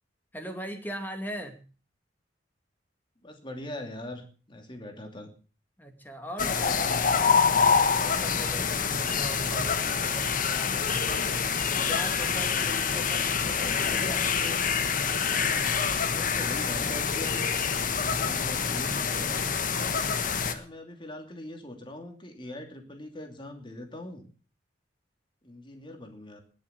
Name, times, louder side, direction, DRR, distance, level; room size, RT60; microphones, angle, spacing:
voice 1, 0.3-1.6 5.8-11.1 11.6-14.3, equal, 10° left, 5 dB, 2.3 m, -41 dB
voice 2, 3.2-5.3 16.0-17.4 18.1-19.4 20.5-24.2 25.4-26.4, left 1 dB, 25° left, 4 dB, 2.8 m, -41 dB
sound 1, 6.4-20.5, left 6 dB, 50° left, 1.3 m, -26 dB
20.5 x 7.1 x 6.8 m, 0.39 s
head